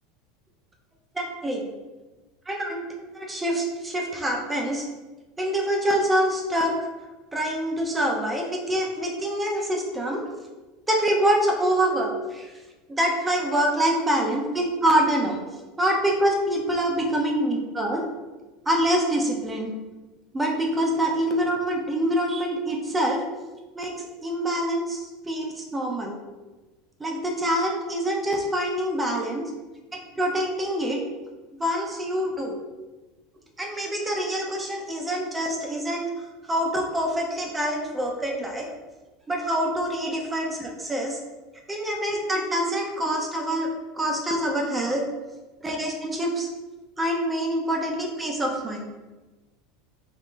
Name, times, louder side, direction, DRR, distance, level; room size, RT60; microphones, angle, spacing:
voice 1, 1.1-1.7 2.5-4.9 5.4-6.7 7.3-10.2 10.9-12.5 12.9-15.4 15.8-18.1 18.7-19.7 20.3-23.2 23.7-23.9 24.2-26.2 27.0-29.4 29.9-31.0 31.5-32.6 33.6-38.7 39.3-41.2 41.7-45.0 45.6-46.5 47.0-48.9, right 1 dB, 15° right, 0 dB, 0.6 m, -25 dB
3.7 x 3.0 x 2.4 m, 1.2 s
supercardioid pair, 105°, 0 cm